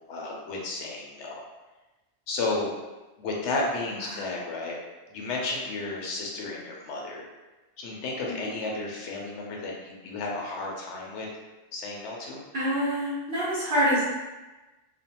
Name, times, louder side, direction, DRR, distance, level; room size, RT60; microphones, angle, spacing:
voice 1, 0.1-1.4 2.3-2.7 3.2-4.8 5.1-7.2 7.8-11.3 11.7-12.4, left 2 dB, 90° left, -2 dB, 0.9 m, -32 dB
voice 2, 12.5-14.0, equal, 50° right, -12 dB, 0.9 m, -26 dB
2.4 x 2.1 x 2.8 m, 1.1 s
omnidirectional pair, 1.1 m